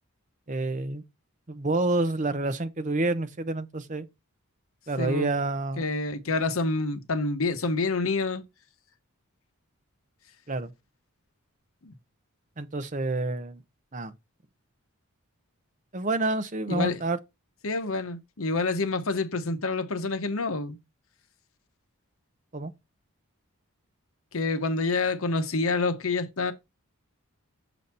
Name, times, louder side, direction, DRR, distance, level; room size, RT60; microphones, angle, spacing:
voice 1, 0.5-1.0 1.5-4.1 4.9-5.8 10.5-10.7 12.6-13.6 13.9-14.1 15.9-17.2 22.5-22.7, right 2 dB, 35° right, 0.8 m, -28 dB
voice 2, 5.0-5.3 5.8-8.4 11.8-11.9 16.7-17.0 17.6-20.8 24.3-26.5, left 3 dB, 65° left, 1.0 m, -27 dB
7.0 x 4.0 x 4.3 m
head